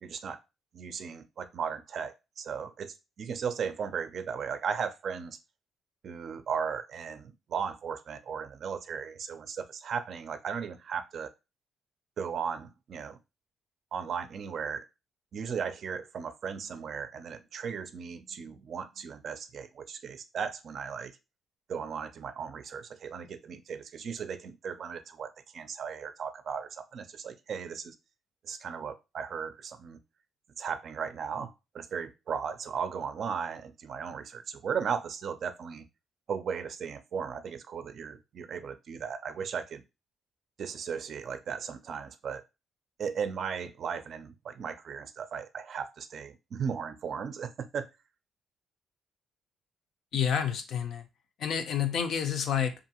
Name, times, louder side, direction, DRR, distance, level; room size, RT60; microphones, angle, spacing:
voice 1, 0.0-0.4 0.7-5.4 6.0-11.3 12.2-13.2 13.9-14.9 15.3-21.2 21.7-28.0 28.4-30.0 30.6-35.8 36.3-39.8 40.6-42.4 43.0-47.9, right 6 dB, 60° right, 0.4 m, -36 dB
voice 2, 50.1-51.0 51.4-52.7, left 8 dB, 70° left, 0.5 m, -29 dB
2.6 x 2.4 x 2.8 m
cardioid pair, 90°, 0 cm